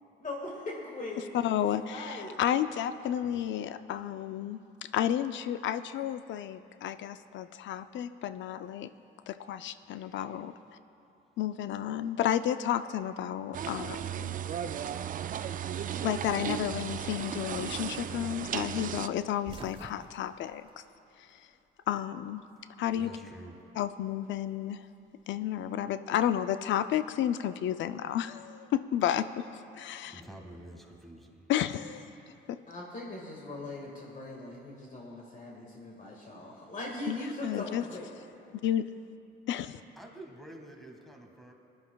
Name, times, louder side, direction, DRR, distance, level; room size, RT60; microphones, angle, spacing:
voice 1, 0.2-1.3 1.7-2.3 32.7-38.2, left 2 dB, 40° left, -2 dB, 1.7 m, -40 dB
voice 2, 1.3-4.6 4.9-8.9 9.3-10.5 11.4-14.4 16.0-20.8 21.3-21.4 21.9-22.4 22.8-23.1 23.8-24.9 25.3-29.5 29.7-30.2 31.5-32.0 32.5-32.6 37.1-37.8 38.6-38.8 39.5-39.7, left 10 dB, 70° left, 12 dB, 0.4 m, -31 dB
voice 3, 9.8-10.2 23.0-23.6 30.0-31.5 36.5-36.7 40.0-41.5, right 1 dB, ahead, 2 dB, 1.7 m, -49 dB
sound 1, 13.5-19.1, right 9 dB, 45° right, 0.4 m, -35 dB
sound 2, 19.4-21.7 22.0-23.0 24.2-25.7, right 3 dB, 25° right, 0.8 m, -50 dB
21.5 x 11.0 x 2.3 m, 2.6 s
cardioid pair, 90°, 20 cm